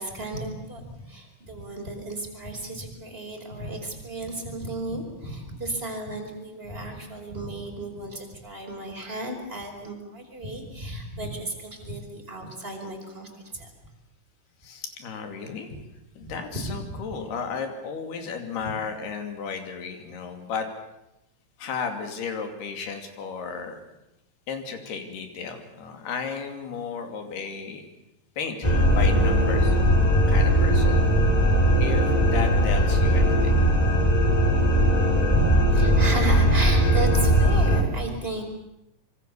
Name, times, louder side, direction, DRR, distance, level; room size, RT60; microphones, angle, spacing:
voice 1, 0.0-13.7 16.2-16.3 16.6-17.1 18.6-18.7 35.3-38.4, right 2 dB, 15° right, 1 dB, 4.9 m, -34 dB
voice 2, 14.6-15.7 16.2-20.7 21.6-23.8 24.5-27.8 28.4-29.8 30.3-31.0 31.8-33.6, left 5 dB, 75° left, 5 dB, 4.7 m, -34 dB
sound 1, 28.6-37.8, equal, 10° left, 2.8 m, -19 dB
25.5 x 24.5 x 7.1 m, 0.86 s
omnidirectional pair, 4.6 m